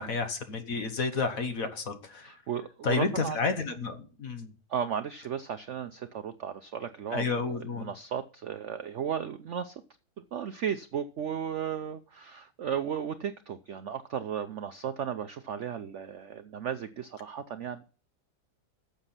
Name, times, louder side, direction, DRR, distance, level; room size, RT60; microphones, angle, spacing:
voice 1, 0.0-2.3 2.8-4.5 7.1-7.9, left 4 dB, 50° left, 9 dB, 1.5 m, -31 dB
voice 2, 2.2-3.4 4.7-9.7 10.2-17.8, right 8 dB, 75° right, 10 dB, 0.6 m, -35 dB
12.0 x 7.3 x 5.7 m, 0.39 s
omnidirectional pair, 2.0 m